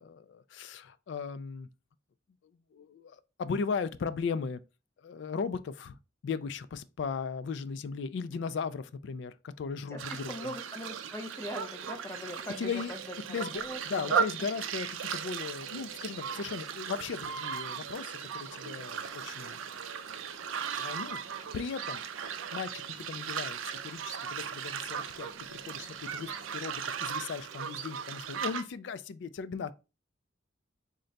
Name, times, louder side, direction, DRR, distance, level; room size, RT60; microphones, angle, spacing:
voice 1, 0.0-1.7 2.7-4.6 5.0-6.0 6.2-10.5 12.6-12.9 13.3-19.6 20.8-22.0 22.5-23.6 23.8-29.7, left 5 dB, 60° left, 0.3 m, -37 dB
voice 2, 9.9-14.2, left 1 dB, 15° left, 0.5 m, -41 dB
sound 1, 10.0-28.6, right 7 dB, 80° right, 0.4 m, -37 dB
sound 2, 11.7-26.6, left 1 dB, 10° right, 0.8 m, -60 dB
3.7 x 2.2 x 3.9 m
head